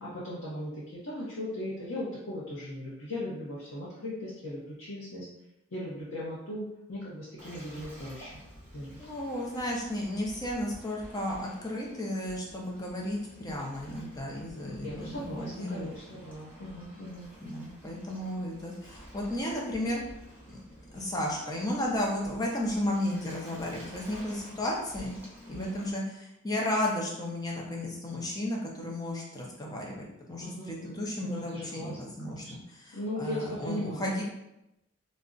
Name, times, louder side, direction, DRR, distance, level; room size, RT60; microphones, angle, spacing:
voice 1, 0.0-5.3 5.7-8.4 8.7-9.0 14.8-17.3 25.5-25.8 30.4-32.5 32.9-34.2, left 1 dB, 80° left, -8 dB, 0.7 m, -38 dB
Waves surf, 7.4-25.9, equal, 10° right, 0.8 m, -50 dB
voice 2, 9.0-15.9 17.4-20.0 20.5-20.6 20.9-34.2, left 1 dB, 20° left, -2 dB, 0.5 m, -34 dB
2.5 x 2.1 x 3.6 m, 0.88 s
head